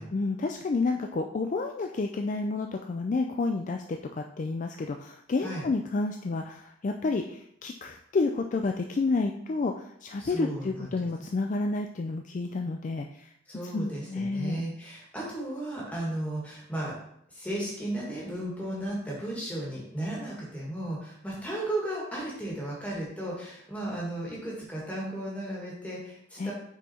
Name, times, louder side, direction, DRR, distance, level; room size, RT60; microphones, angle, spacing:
voice 1, 0.1-13.3 13.7-14.6 26.4-26.5, left 3 dB, 40° left, 4 dB, 0.3 m, -30 dB
voice 2, 10.2-10.9 13.5-16.9 17.3-26.5, right 1 dB, 5° left, -5 dB, 1.9 m, -35 dB
5.8 x 4.4 x 4.3 m, 0.73 s
head